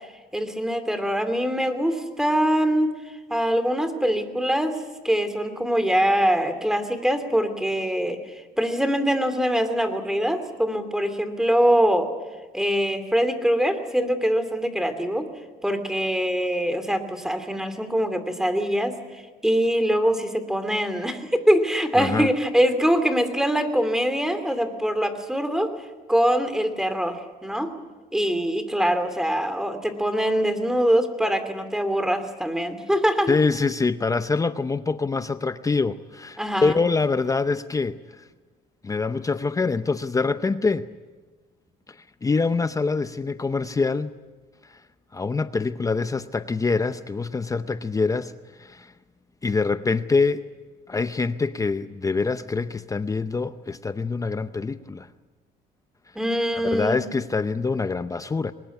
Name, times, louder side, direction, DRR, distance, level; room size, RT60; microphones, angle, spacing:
voice 1, 0.3-2.9 3.3-4.8 5.0-8.2 8.6-12.1 12.5-15.3 15.6-18.9 19.4-25.7 26.1-27.7 28.1-33.4 36.4-36.8 56.1-57.0, equal, 5° right, 2.7 m, -23 dB
voice 2, 22.0-22.3 33.3-38.0 38.8-40.9 42.2-44.1 45.1-48.3 48.6-48.9 49.4-50.4 50.9-55.1 56.7-58.5, left 4 dB, 20° left, 0.7 m, -25 dB
23.0 x 20.0 x 9.5 m
cardioid pair, 110°, 17 cm